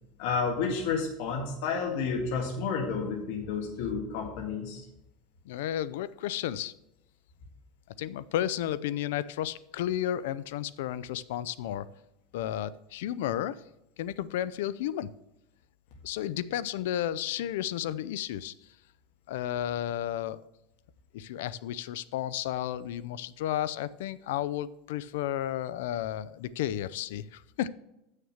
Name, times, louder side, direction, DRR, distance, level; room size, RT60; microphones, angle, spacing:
voice 1, 0.2-4.8, left 5 dB, 60° left, 0 dB, 1.8 m, -31 dB
voice 2, 5.5-6.7 8.0-11.9 12.3-13.6 14.0-15.1 16.0-18.5 19.3-20.4 21.1-27.7, left 12 dB, 90° left, 17 dB, 0.4 m, -32 dB
7.1 x 6.5 x 6.4 m, 0.88 s
supercardioid pair, 170°, 0 cm